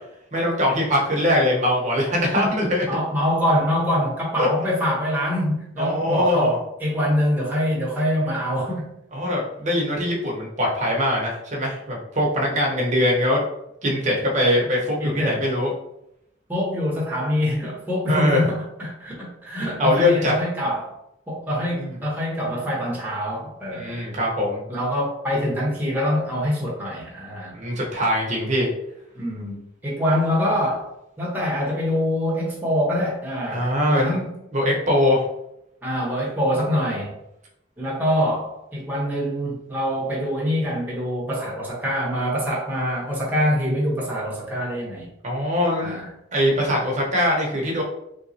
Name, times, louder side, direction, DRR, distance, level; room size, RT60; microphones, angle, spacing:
voice 1, 0.3-2.9 4.4-4.5 5.8-6.6 9.1-13.4 13.8-15.7 18.1-18.4 19.8-20.3 21.8-21.9 23.7-24.6 27.5-28.7 33.5-34.2 34.5-35.2 45.2-46.0 46.3-47.8, left 1 dB, 40° right, -2 dB, 0.9 m, -22 dB
voice 2, 2.9-8.9 15.0-15.4 16.5-20.9 21.3-24.0 24.7-27.5 29.1-30.9 31.2-34.4 35.8-37.1 37.8-45.1 45.8-46.1, equal, 10° right, -5 dB, 1.0 m, -24 dB
3.4 x 3.1 x 2.7 m, 0.82 s
head